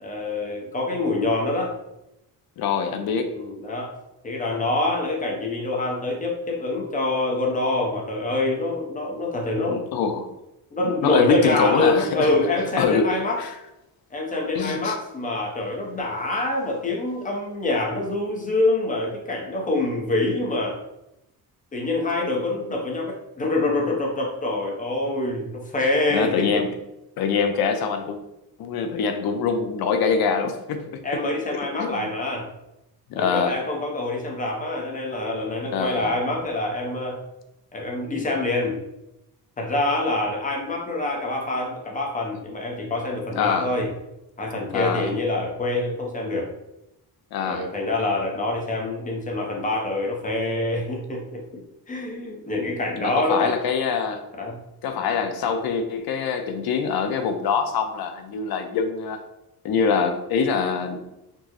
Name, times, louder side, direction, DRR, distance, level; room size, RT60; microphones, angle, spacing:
voice 1, 0.0-1.7 3.3-3.9 4.2-9.8 10.7-13.4 14.1-20.8 21.7-26.6 31.0-32.5 33.2-37.2 37.7-38.8 39.6-43.9 44.4-46.5 47.5-53.5 54.4-54.6, left 2 dB, 20° left, 0 dB, 0.6 m, -25 dB
voice 2, 2.6-3.4 9.7-10.3 10.8-12.4 12.8-13.5 14.5-15.0 26.1-26.7 27.2-28.2 28.6-31.2 31.5-32.1 33.1-33.5 35.7-36.1 43.3-43.7 44.7-45.1 47.3-47.7 53.0-54.3 54.8-59.2 59.6-61.0, left 6 dB, 70° left, 7 dB, 0.5 m, -24 dB
4.4 x 2.0 x 2.9 m, 0.90 s
cardioid pair, 165°, 39 cm